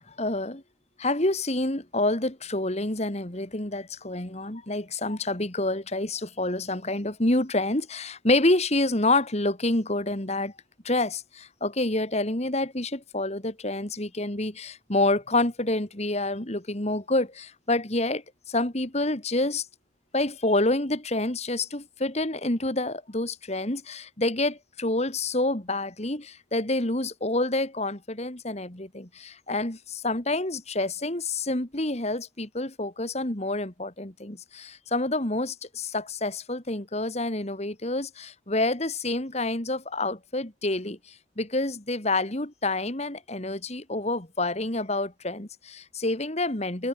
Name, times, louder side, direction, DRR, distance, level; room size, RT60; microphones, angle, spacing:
voice 1, 0.2-0.6 1.0-10.5 10.8-19.7 20.1-46.9, left 2 dB, 35° left, 2.4 m, -28 dB
head